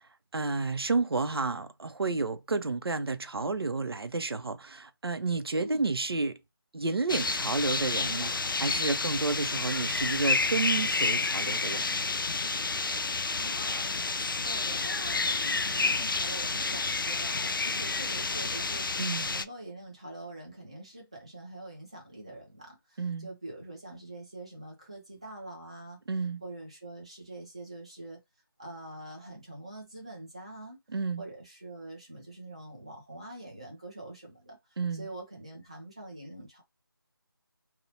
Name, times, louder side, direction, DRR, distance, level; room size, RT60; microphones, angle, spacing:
voice 1, 0.3-6.3 6.7-12.0 19.0-19.3 23.0-23.3 26.1-26.4 30.9-31.2 34.8-35.1, right 3 dB, 80° right, 0.6 m, -31 dB
sound 1, 7.1-19.4, left 3 dB, 60° left, 0.4 m, -30 dB
voice 2, 13.0-26.0 26.4-28.2 28.6-30.8 31.2-34.6 34.9-36.6, right 1 dB, 15° right, 0.5 m, -45 dB
2.7 x 2.1 x 2.7 m
figure-of-eight pair, 175°, 13 cm